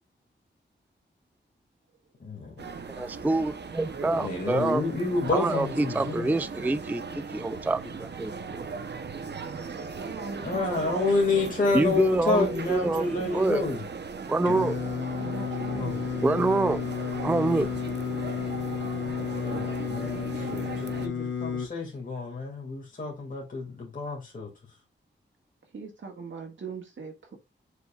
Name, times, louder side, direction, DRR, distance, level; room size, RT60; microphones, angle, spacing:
voice 1, 2.2-2.7 4.1-6.3 10.4-13.8 15.7-16.1 19.3-24.5, left 3 dB, 45° left, 2.1 m, -29 dB
sound 1, 2.6-21.1, right 5 dB, 60° right, 0.8 m, -38 dB
voice 2, 2.9-4.8 5.3-8.6 11.7-13.6 14.3-14.8 16.2-16.8 17.2-17.7, right 2 dB, 10° right, 0.3 m, -26 dB
voice 3, 10.0-11.1 15.2-16.9 25.7-27.4, right 4 dB, 75° right, 1.9 m, -40 dB
Singing, 14.5-21.7, left 7 dB, 70° left, 0.9 m, -32 dB
7.9 x 5.1 x 2.4 m
wide cardioid pair, 110°, 20 cm